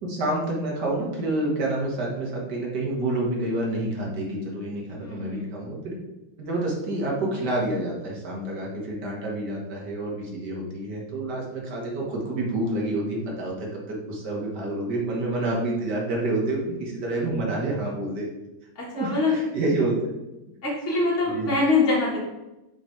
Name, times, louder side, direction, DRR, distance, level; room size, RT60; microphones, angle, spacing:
voice 1, 0.0-6.0 6.4-18.3 18.9-20.0 21.3-21.5, right 2 dB, 55° right, -2 dB, 2.1 m, -28 dB
voice 2, 4.9-5.4 18.7-19.4 20.6-22.2, left 3 dB, 40° left, -7 dB, 1.7 m, -24 dB
5.8 x 4.4 x 4.5 m, 1.0 s
omnidirectional pair, 2.2 m